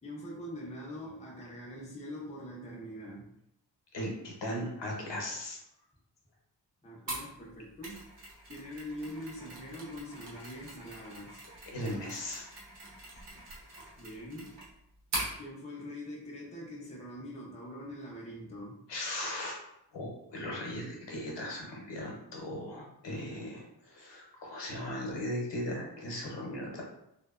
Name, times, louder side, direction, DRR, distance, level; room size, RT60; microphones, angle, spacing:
voice 1, 0.0-3.3 6.8-8.1 8.5-11.4 14.0-14.7 15.4-18.8, equal, 15° left, -4 dB, 0.4 m, -43 dB
voice 2, 3.9-5.6 11.7-12.5 18.9-19.6 19.9-26.8, left 1 dB, 75° left, -1 dB, 0.7 m, -38 dB
Mechanisms, 7.1-15.4, right 1 dB, 70° right, 0.9 m, -43 dB
2.7 x 2.1 x 2.3 m, 0.81 s
wide cardioid pair, 175°, 42 cm